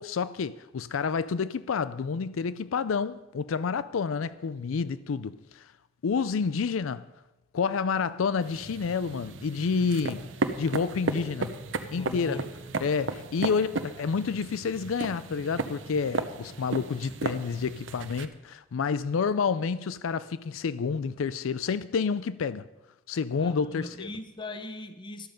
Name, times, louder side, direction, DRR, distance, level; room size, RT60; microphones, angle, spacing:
voice 1, 0.0-5.7 6.0-7.0 7.5-10.3 10.6-11.5 11.9-12.4 12.8-22.6 23.1-24.1, left 5 dB, 85° left, 0.4 m, -29 dB
sound 1, 8.4-18.3, right 3 dB, 65° right, 0.8 m, -35 dB
voice 2, 11.9-12.5 23.3-25.3, left 2 dB, 25° left, 0.9 m, -40 dB
13.0 x 12.5 x 5.2 m
head